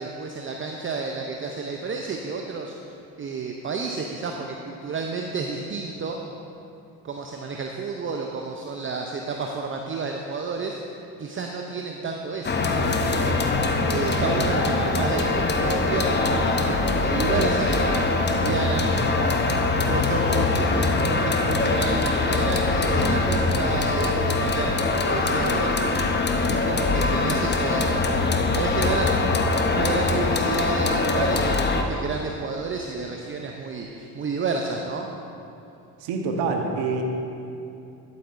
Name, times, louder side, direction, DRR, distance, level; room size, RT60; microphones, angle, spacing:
voice 1, 0.0-2.7 3.2-6.2 7.0-10.8 11.2-13.6 13.9-18.9 19.9-26.1 26.5-28.3 28.5-29.3 29.7-35.1, right 4 dB, 25° right, 2 dB, 0.6 m, -30 dB
sound 1, 12.4-31.8, left 3 dB, 25° left, 0.7 m, -23 dB
voice 2, 36.0-37.0, right 4 dB, 65° right, 2 dB, 1.2 m, -26 dB
11.5 x 8.4 x 2.6 m, 2.7 s
hypercardioid pair, 65°, 46 cm